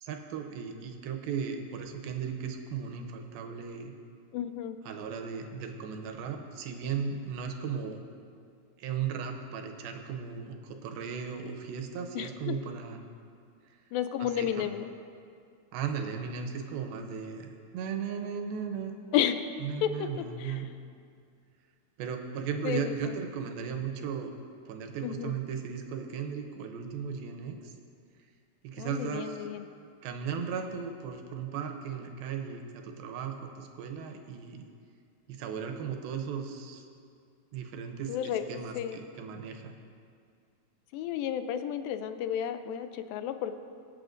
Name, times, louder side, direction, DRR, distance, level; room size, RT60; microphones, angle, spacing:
voice 1, 0.0-3.9 4.8-8.0 8.8-13.1 14.2-14.7 15.7-18.9 19.6-20.7 22.0-24.3 24.7-27.7 28.6-29.5 30.0-34.7 35.3-36.8 37.5-39.7, right 6 dB, 80° right, 4 dB, 2.5 m, -36 dB
voice 2, 4.3-4.8 12.2-12.5 13.9-14.9 19.1-19.5 19.8-20.1 20.4-20.7 22.6-23.2 25.0-25.4 28.8-29.6 38.1-38.4 38.8-39.1 40.9-43.5, left 10 dB, 80° left, 10 dB, 2.2 m, -32 dB
23.5 x 8.4 x 2.6 m, 2.3 s
omnidirectional pair, 4.3 m